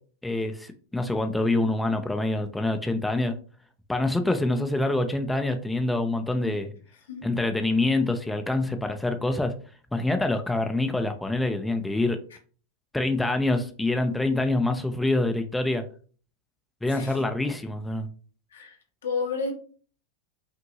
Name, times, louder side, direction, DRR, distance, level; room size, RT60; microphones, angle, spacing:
voice 1, 0.2-3.3 3.9-6.7 7.2-9.5 9.9-12.2 12.9-15.8 16.8-18.1, left 2 dB, 5° left, 0.5 m, -26 dB
voice 2, 16.9-17.2 18.5-19.5, left 4 dB, 75° left, 1.0 m, -31 dB
5.6 x 2.6 x 2.7 m
hypercardioid pair, 90°, 0 cm